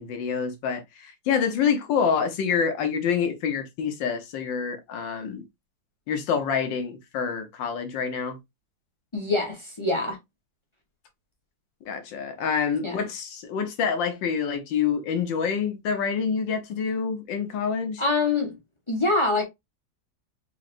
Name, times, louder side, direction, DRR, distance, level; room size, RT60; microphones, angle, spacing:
voice 1, 0.0-5.4 6.1-8.4 11.9-18.0, left 6 dB, 65° left, 1.6 m, -27 dB
voice 2, 9.1-10.2 12.8-13.0 18.0-18.6 18.9-19.4, left 3 dB, 25° left, 0.6 m, -24 dB
4.9 x 3.2 x 2.5 m
omnidirectional pair, 2.3 m